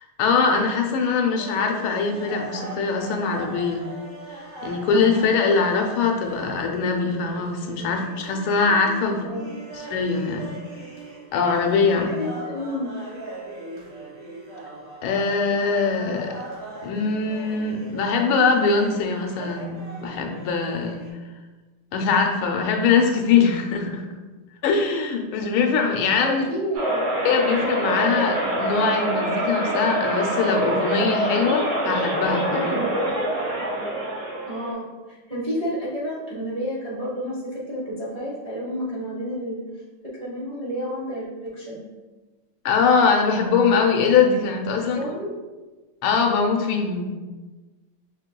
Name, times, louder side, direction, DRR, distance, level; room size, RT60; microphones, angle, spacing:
voice 1, 0.2-3.8 4.6-9.3 9.9-10.5 11.3-12.1 15.0-16.4 16.8-21.0 21.9-24.0 24.6-26.4 27.2-32.8 42.6-45.0 46.0-47.1, left 5 dB, 75° left, 2 dB, 1.4 m, -22 dB
sound 1, 1.4-21.1, right 2 dB, 20° right, 1.1 m, -40 dB
voice 2, 9.0-9.4 11.8-12.9 26.2-27.1 34.5-34.9 35.3-39.6 40.2-41.8 44.8-45.3, equal, 65° right, -8 dB, 0.3 m, -30 dB
sound 2, 26.7-34.7, right 1 dB, 85° right, 2.2 m, -25 dB
6.3 x 3.4 x 2.2 m, 1.2 s
omnidirectional pair, 2.4 m